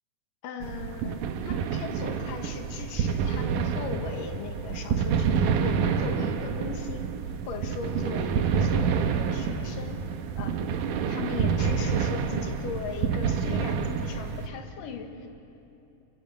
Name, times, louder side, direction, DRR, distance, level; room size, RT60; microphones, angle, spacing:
voice 1, 0.4-7.1 7.5-10.8 11.1-15.3, left 5 dB, 80° left, 5 dB, 3.1 m, -39 dB
sound 1, 0.6-14.5, right 6 dB, 75° right, 2.5 m, -28 dB
30.0 x 23.0 x 5.6 m, 2.8 s
omnidirectional pair, 3.8 m